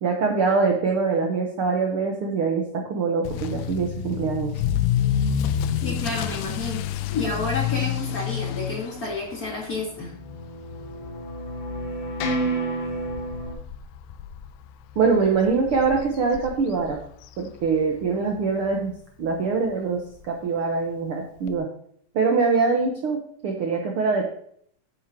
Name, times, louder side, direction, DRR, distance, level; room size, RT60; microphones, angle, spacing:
voice 1, 0.0-4.5 15.0-17.0 17.4-21.7 22.1-24.2, right 4 dB, 85° right, 1 dB, 1.2 m, -23 dB
Motor vehicle (road) / Accelerating revving vroom, 3.3-18.1 18.4-18.8 19.3-19.4 19.7-19.8 20.1-20.2 21.5-21.6, left 9 dB, 85° left, 2.4 m, -30 dB
voice 2, 5.8-6.8 7.1-10.1, left 3 dB, 35° left, -3 dB, 1.7 m, -30 dB
sound 1, 10.0-13.5, right 2 dB, 65° left, 2.5 m, -30 dB
9.9 x 9.1 x 3.0 m, 0.63 s
omnidirectional pair, 4.0 m